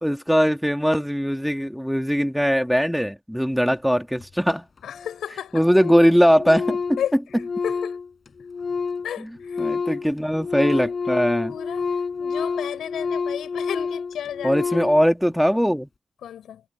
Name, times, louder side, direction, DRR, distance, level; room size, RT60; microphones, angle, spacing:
voice 1, 0.0-4.6 5.5-7.0 9.2-9.3 9.6-11.5 14.4-15.9, equal, ahead, 2.2 m, -20 dB
Organ, 3.9-4.0 4.2-4.3 4.5-4.6 4.8-5.2 5.5-9.1 9.4-15.0, left 5 dB, 55° left, 7.5 m, -28 dB
voice 2, 4.8-5.6 7.0-7.1 7.6-8.0 9.0-9.7 11.5-11.9 12.2-14.6 16.2-16.6, left 10 dB, 85° left, 6.4 m, -32 dB
supercardioid pair, 45°, 0 cm